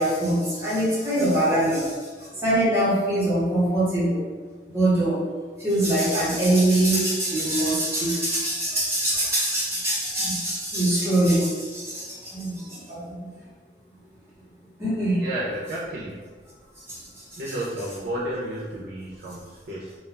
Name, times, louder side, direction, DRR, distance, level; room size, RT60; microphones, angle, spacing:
voice 1, 0.0-1.9 2.3-4.2 4.7-5.2 5.6-13.3 14.8-15.2 16.9-17.0 17.3-17.4, right 1 dB, 15° right, -10 dB, 0.9 m, -23 dB
voice 2, 15.2-16.3 17.4-20.0, right 1 dB, 85° right, -6 dB, 0.5 m, -32 dB
2.3 x 2.2 x 3.2 m, 1.5 s
head